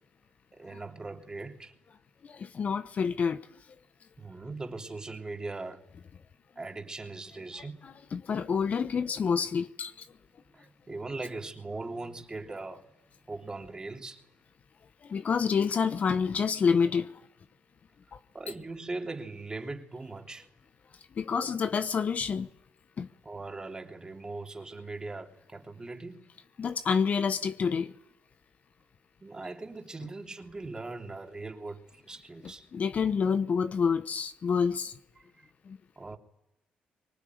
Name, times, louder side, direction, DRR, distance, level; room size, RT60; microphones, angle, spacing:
voice 1, 0.5-1.7 4.2-5.9 6.5-7.9 10.5-12.9 13.3-14.2 18.3-20.5 23.2-26.3 29.2-32.7 35.4-35.5 36.0-36.2, right 3 dB, 25° right, 3.2 m, -40 dB
voice 2, 2.2-3.4 7.8-10.1 15.0-17.2 18.1-18.2 21.2-22.5 23.0-23.1 26.6-27.9 32.4-35.0 35.7-35.8, left 6 dB, 50° left, 1.0 m, -28 dB
25.0 x 20.0 x 9.5 m
cardioid pair, 80°, 3 cm